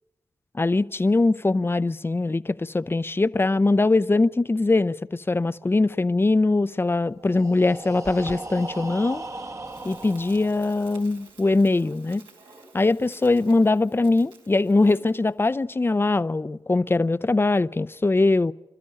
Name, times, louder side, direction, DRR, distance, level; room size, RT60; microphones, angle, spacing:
voice 1, 0.5-9.2 9.8-12.2 12.7-18.5, left 2 dB, 25° left, 0.7 m, -22 dB
Breathing, 7.2-11.0, right 2 dB, 40° right, 1.5 m, -37 dB
sound 1, 8.0-8.4, right 1 dB, 10° right, 1.0 m, -39 dB
Crackle, 9.6-15.3, right 3 dB, 80° right, 3.9 m, -51 dB
29.0 x 13.0 x 9.8 m
cardioid pair, 50°, 8 cm